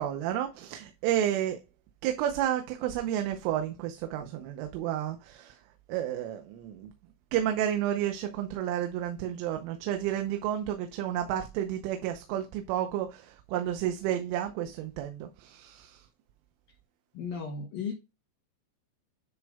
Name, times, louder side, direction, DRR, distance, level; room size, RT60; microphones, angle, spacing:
voice 1, 0.0-1.6 2.0-5.6 5.9-6.9 7.3-16.1, right 11 dB, 85° right, 3.4 m, -31 dB
voice 2, 17.1-17.9, left 5 dB, 90° left, 1.9 m, -35 dB
10.5 x 6.2 x 2.3 m
omnidirectional pair, 5.7 m